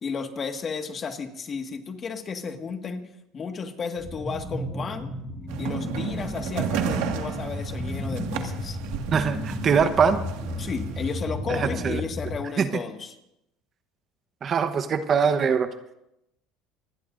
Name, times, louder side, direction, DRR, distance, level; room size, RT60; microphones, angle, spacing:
voice 1, 0.0-5.1 5.6-8.8 10.6-13.2, left 5 dB, 35° left, 5 dB, 1.8 m, -33 dB
sound 1, 4.0-12.4, left 1 dB, 5° left, 7.0 m, -33 dB
sound 2, 5.5-11.2, right 8 dB, 80° right, 1.9 m, -33 dB
voice 2, 9.1-10.2 11.5-12.0 12.6-12.7 14.4-15.7, right 6 dB, 35° right, 9 dB, 1.1 m, -22 dB
27.0 x 20.0 x 2.6 m, 0.84 s
supercardioid pair, 120°, 0 cm